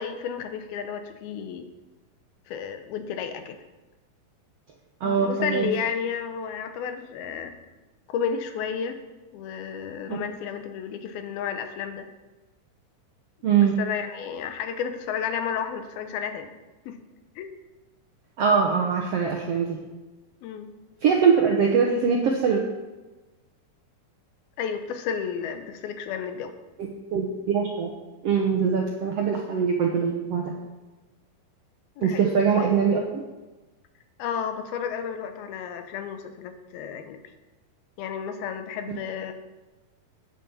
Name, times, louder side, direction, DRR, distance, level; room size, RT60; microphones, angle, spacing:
voice 1, 0.0-1.7 2.5-3.6 5.0-7.5 8.1-9.0 9.3-12.1 13.6-16.5 16.9-17.0 17.4-17.5 20.4-20.7 24.6-26.5 32.0-32.3 32.5-32.8 34.2-37.2 38.0-39.3, left 7 dB, 90° left, 8 dB, 2.8 m, -32 dB
voice 2, 5.0-5.7 10.1-10.2 13.4-13.8 18.4-19.8 21.0-22.6 26.8-27.9 28.2-30.5 32.0-33.2, right 6 dB, 75° right, 1 dB, 1.4 m, -22 dB
9.5 x 7.6 x 7.1 m, 1.2 s
omnidirectional pair, 4.3 m